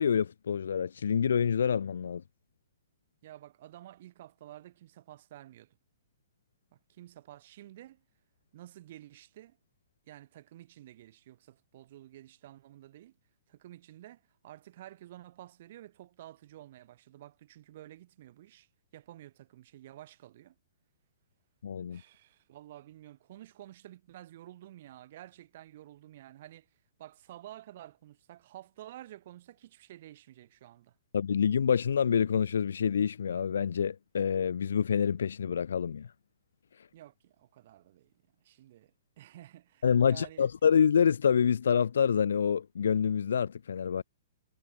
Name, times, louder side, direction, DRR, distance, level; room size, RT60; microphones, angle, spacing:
voice 1, 0.0-2.2 21.6-22.0 31.1-36.1 39.8-44.0, left 7 dB, 85° left, 0.3 m, -27 dB
voice 2, 3.2-5.8 6.7-8.0 8.5-9.6 10.1-13.1 13.5-18.7 18.9-20.5 21.9-26.7 27.0-31.0 36.9-38.1 38.4-40.5, right 13 dB, 45° right, 1.4 m, -51 dB
hypercardioid pair, 160°, 0 cm